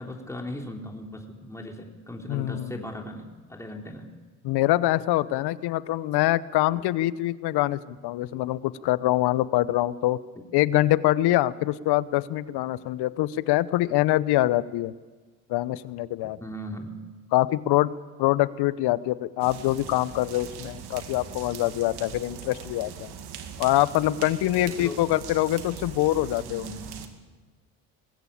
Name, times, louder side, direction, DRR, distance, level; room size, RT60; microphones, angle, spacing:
voice 1, 0.0-4.1 6.7-6.8 10.4-10.5 16.4-17.0 24.5-25.0 26.5-27.1, equal, 5° left, 1 dB, 3.6 m, -38 dB
voice 2, 2.3-2.7 4.4-10.2 10.5-14.9 15.5-16.4 17.3-17.9 18.2-23.1 23.6-26.7, left 16 dB, 65° left, 18 dB, 1.0 m, -24 dB
sound 1, 19.4-27.1, right 7 dB, 65° right, 2.5 m, -41 dB
21.5 x 16.0 x 8.7 m, 1.3 s
hypercardioid pair, 65°, 43 cm